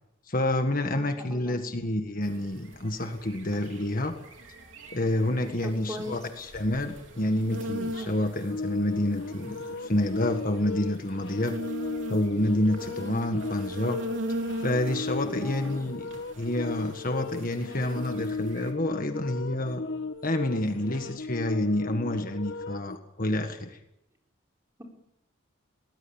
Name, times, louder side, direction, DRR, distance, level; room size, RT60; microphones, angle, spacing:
voice 1, 0.3-4.1 4.9-11.6 12.1-14.0 14.6-19.8 20.2-23.8, left 1 dB, 40° left, 6 dB, 1.7 m, -28 dB
voice 2, 0.9-1.6 5.6-6.2 15.3-15.7, equal, 15° right, 1 dB, 4.5 m, -39 dB
sound 1, 2.2-18.7, right 1 dB, 60° right, 3.8 m, -40 dB
sound 2, 8.5-23.0, left 3 dB, 55° left, 1.3 m, -36 dB
23.0 x 19.5 x 8.8 m, 0.84 s
head